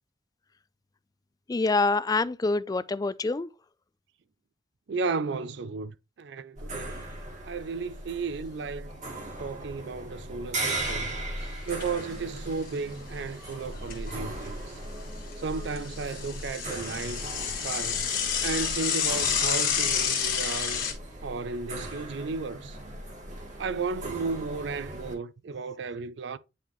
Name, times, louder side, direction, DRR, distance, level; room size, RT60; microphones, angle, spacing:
voice 1, 1.5-3.5, left 3 dB, 20° left, 0.3 m, -26 dB
voice 2, 4.9-7.1 7.4-9.0 9.4-11.1 11.7-14.6 15.4-18.1 18.4-20.9 21.2-22.8 23.6-26.4, right 4 dB, 70° right, 0.4 m, -34 dB
sound 1, 6.6-25.1, right 1 dB, 40° right, 2.0 m, -38 dB
Bicycle / Mechanisms, 11.4-12.0 12.4-12.5 12.7-12.8 13.5-14.6 15.0-20.9, left 7 dB, 50° left, 1.5 m, -29 dB
9.3 x 3.5 x 3.1 m
head